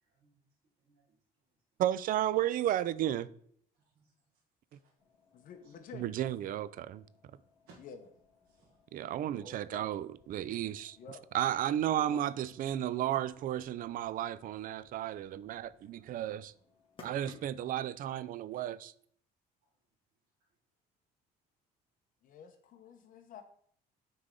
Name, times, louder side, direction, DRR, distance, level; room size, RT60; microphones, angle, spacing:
voice 1, 0.0-1.2 3.7-4.4 4.8-4.9 5.6-5.7 7.7-7.8 8.5-9.8 14.3-14.5 15.5-16.2 19.6-19.7, right 3 dB, 90° right, 1.5 m, -61 dB
voice 2, 1.8-3.3 5.9-7.0 8.9-11.0 11.3-16.5 17.0-18.9, right 11 dB, 55° right, 0.4 m, -33 dB
sound 1, 5.0-17.8, left 3 dB, 30° left, 1.7 m, -62 dB
voice 3, 5.3-6.1 7.8-8.0 9.7-9.9 11.0-11.2 11.9-12.2 22.2-23.4, left 6 dB, 55° left, 0.9 m, -49 dB
9.6 x 3.4 x 3.7 m
cardioid pair, 110°, 17 cm